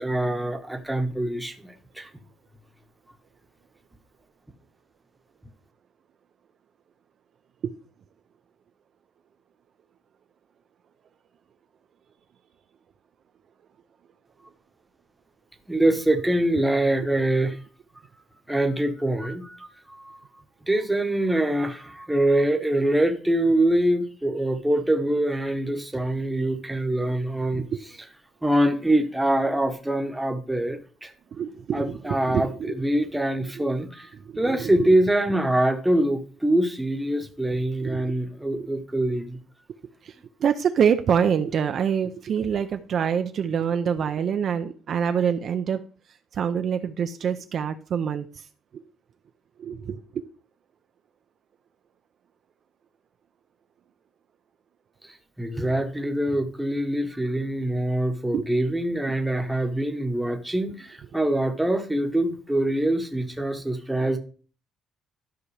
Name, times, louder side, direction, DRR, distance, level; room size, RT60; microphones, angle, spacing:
voice 1, 0.0-2.1 15.7-17.6 18.5-20.2 20.7-27.7 28.4-31.1 31.7-34.1 34.4-39.4 55.0-64.2, right 1 dB, 5° right, 1.0 m, -24 dB
voice 2, 31.3-32.8 33.6-33.7 34.3-34.9 37.8-38.1 38.6-38.7 40.0-40.1 40.4-45.8 46.3-48.5 48.7-48.8 49.6-50.2 58.3-58.5, right 7 dB, 45° right, 0.5 m, -26 dB
12.5 x 5.8 x 3.3 m
cardioid pair, 160°, 0 cm